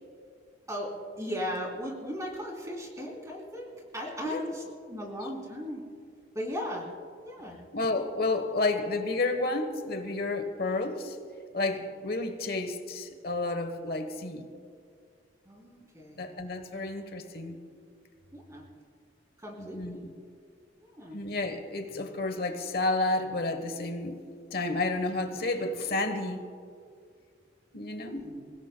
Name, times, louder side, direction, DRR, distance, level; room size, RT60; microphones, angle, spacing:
voice 1, 1.2-5.8 6.3-6.9 7.2-7.6 15.4-16.2 18.3-18.6 19.4-20.0 20.8-21.2 28.0-28.5, equal, 15° right, -1 dB, 3.3 m, -37 dB
voice 2, 7.7-11.2 11.5-14.5 16.2-17.6 19.6-20.1 21.1-24.2 24.5-26.4 27.7-28.3, left 2 dB, 55° left, 7 dB, 1.1 m, -31 dB
27.0 x 17.0 x 2.2 m, 2.2 s
head